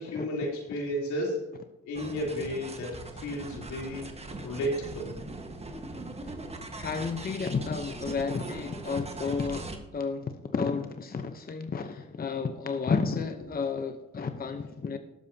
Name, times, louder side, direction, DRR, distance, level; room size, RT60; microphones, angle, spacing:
voice 1, 0.0-1.4 1.9-2.9 3.2-4.1 4.4-5.1, equal, 80° left, -2 dB, 3.5 m, -32 dB
sound 1, 1.9-9.8, right 2 dB, 20° right, 1.5 m, -40 dB
voice 2, 6.7-15.0, left 5 dB, 30° left, 7 dB, 0.9 m, -32 dB
19.0 x 7.3 x 2.8 m, 1.0 s
supercardioid pair, 75°, 29 cm